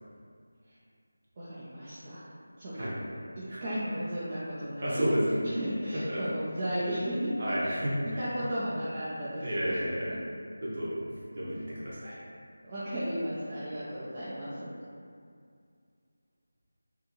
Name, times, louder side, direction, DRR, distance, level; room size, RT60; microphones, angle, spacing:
voice 1, 1.4-2.3 2.6-5.1 5.4-7.3 7.6-9.8 10.1-10.2 12.6-14.7, equal, 25° right, -11 dB, 0.4 m, -35 dB
voice 2, 4.8-5.2 6.1-6.3 7.4-8.2 9.4-10.1 10.6-10.9 11.3-12.2, equal, 50° right, -8 dB, 0.9 m, -31 dB
2.5 x 2.5 x 2.8 m, 2.2 s
figure-of-eight pair, 170°, 0 cm